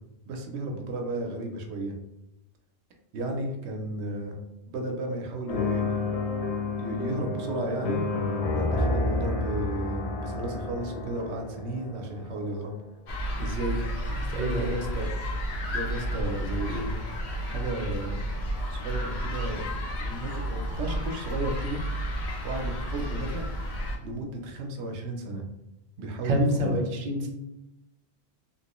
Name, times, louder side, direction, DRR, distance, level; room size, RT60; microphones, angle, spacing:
voice 1, 0.3-2.0 3.1-4.4 4.7-6.2 6.8-8.0 8.5-12.7 13.4-13.9 14.5-15.1 15.6-16.9 17.5-18.2 18.7-19.7 20.0-21.8 22.4-23.4 24.0-25.4 26.0-26.8, right 1 dB, 85° right, 3 dB, 0.9 m, -33 dB
sound 1, 5.5-12.6, left 3 dB, 60° left, 0.4 m, -30 dB
sound 2, 13.1-24.0, equal, 75° left, 1.0 m, -32 dB
voice 2, 14.1-14.7 26.2-27.3, right 1 dB, 50° right, 0 dB, 0.7 m, -27 dB
2.9 x 2.9 x 2.9 m, 0.92 s
omnidirectional pair, 1.1 m